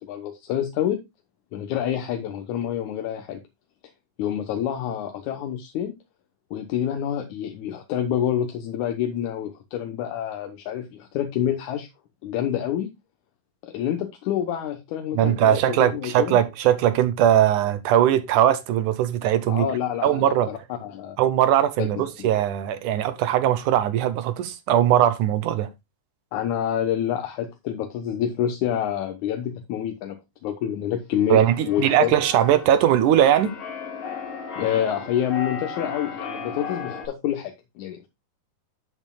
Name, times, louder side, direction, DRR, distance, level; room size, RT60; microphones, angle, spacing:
voice 1, 0.0-1.0 1.5-3.4 4.2-5.9 6.5-11.9 12.2-12.9 13.6-16.4 19.5-21.2 21.8-22.3 26.3-30.2 30.4-32.1 34.6-38.1, left 10 dB, 70° left, 2.2 m, -27 dB
voice 2, 15.1-19.7 20.0-20.5 21.2-25.7 31.3-33.6, right 11 dB, 75° right, 2.1 m, -20 dB
Keyboard (musical), 31.2-37.1, left 5 dB, 50° left, 2.8 m, -35 dB
11.0 x 8.0 x 2.2 m
omnidirectional pair, 3.9 m